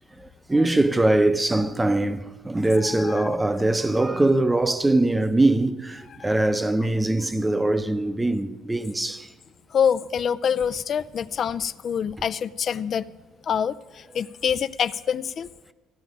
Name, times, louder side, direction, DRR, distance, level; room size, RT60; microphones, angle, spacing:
voice 1, 0.5-9.3, right 2 dB, 10° right, 0.6 m, -22 dB
voice 2, 2.8-3.3 6.2-6.3 9.7-13.1 13.4-15.5, left 7 dB, 45° left, 0.3 m, -26 dB
14.5 x 9.1 x 5.2 m
cardioid pair, 105°, 0 cm